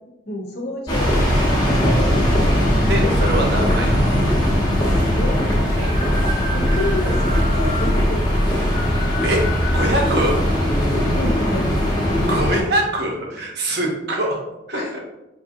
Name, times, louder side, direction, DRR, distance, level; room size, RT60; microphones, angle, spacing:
voice 1, 0.3-3.1 5.0-5.4 6.2-8.2 10.9-11.8 14.7-15.0, left 1 dB, 50° left, -2 dB, 0.9 m, -29 dB
sound 1, 0.9-12.6, equal, 20° left, 0.9 m, -19 dB
voice 2, 2.9-4.1 5.8-5.9 9.2-9.4 9.7-10.4 12.3-14.4 14.7-15.0, right 1 dB, 55° right, 0 dB, 0.8 m, -23 dB
5.3 x 2.7 x 2.6 m, 0.95 s
head